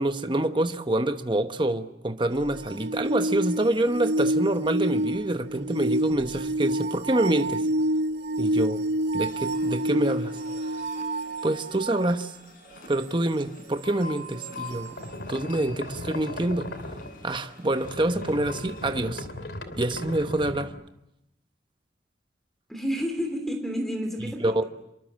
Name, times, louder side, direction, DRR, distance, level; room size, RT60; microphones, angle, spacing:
voice 1, 0.0-7.7 8.4-8.8 9.1-10.8 11.4-12.4 12.9-15.0 15.3-16.7 17.2-19.3 19.8-20.7 24.4-24.6, right 1 dB, 25° right, 1.1 m, -26 dB
sound 1, 2.3-12.1 14.4-14.5, right 1 dB, 80° right, 0.9 m, -28 dB
sound 2, 9.2-18.9, left 1 dB, 55° left, 5.7 m, -46 dB
sound 3, 15.0-17.4 17.7-20.7, left 1 dB, 75° left, 3.0 m, -38 dB
voice 2, 22.7-24.6, equal, ahead, 3.1 m, -30 dB
27.0 x 23.5 x 7.5 m
head